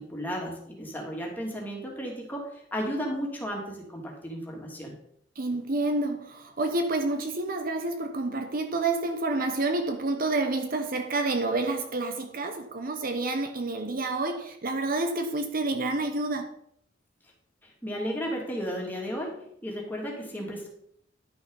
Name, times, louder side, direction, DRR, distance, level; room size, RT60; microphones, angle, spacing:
voice 1, 0.0-5.0 17.6-20.7, equal, 10° left, 2.7 m, -34 dB
voice 2, 5.4-16.5, right 2 dB, 50° right, 1.0 m, -29 dB
11.0 x 6.2 x 5.5 m
head